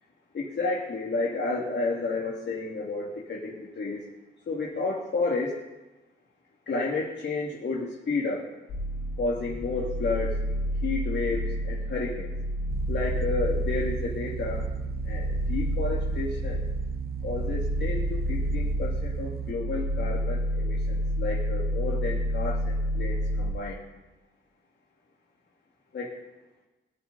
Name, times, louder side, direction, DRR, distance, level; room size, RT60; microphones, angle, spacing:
voice 1, 0.3-4.0 4.5-5.6 6.7-8.5 9.2-10.3 10.8-12.3 12.9-14.6 15.0-16.6 17.2-23.8 25.9-26.1, left 3 dB, 55° left, -4 dB, 2.4 m, -31 dB
sound 1, 8.7-23.5, equal, 90° left, 4.9 m, -30 dB
sound 2, 12.7-19.5, right 8 dB, 45° right, 0.6 m, -35 dB
21.5 x 10.5 x 4.1 m, 1.1 s
wide cardioid pair, 120°, 21 cm